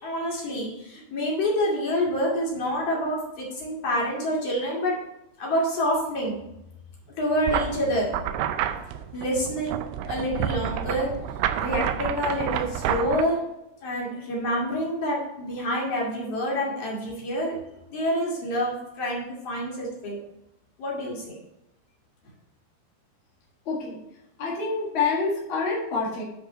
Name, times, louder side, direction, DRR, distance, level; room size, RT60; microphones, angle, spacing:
voice 1, 0.0-5.0 5.4-6.4 7.2-8.1 9.1-9.8 10.1-11.1 11.6-13.4 13.8-17.6 17.9-20.2 20.8-21.4, equal, 40° left, -4 dB, 3.0 m, -27 dB
sound 1, 7.5-13.2, right 10 dB, 80° right, 2.6 m, -29 dB
voice 2, 23.6-24.0 24.4-26.2, left 4 dB, 65° left, -4 dB, 1.2 m, -27 dB
9.3 x 5.2 x 5.2 m, 0.86 s
omnidirectional pair, 5.4 m